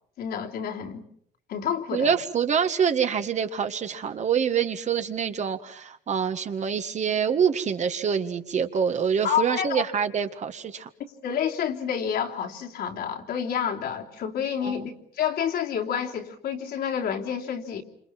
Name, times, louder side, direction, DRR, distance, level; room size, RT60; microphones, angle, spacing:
voice 1, 0.2-1.0 1.5-2.1 9.2-9.8 11.0-17.8, left 8 dB, 70° left, 1 dB, 3.2 m, -29 dB
voice 2, 1.9-10.9 14.6-14.9, right 7 dB, 45° right, 8 dB, 1.8 m, -26 dB
28.5 x 26.5 x 6.0 m, 0.67 s
cardioid pair, 110°, 17 cm